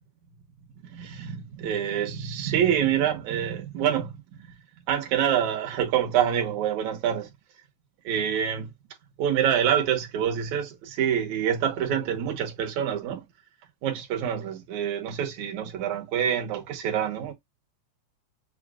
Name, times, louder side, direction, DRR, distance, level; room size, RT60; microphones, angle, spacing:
voice 1, 0.9-4.1 4.9-7.3 8.1-8.7 9.2-13.2 13.8-17.3, right 9 dB, 70° right, 2.3 m, -26 dB
6.8 x 2.4 x 2.3 m
omnidirectional pair, 3.6 m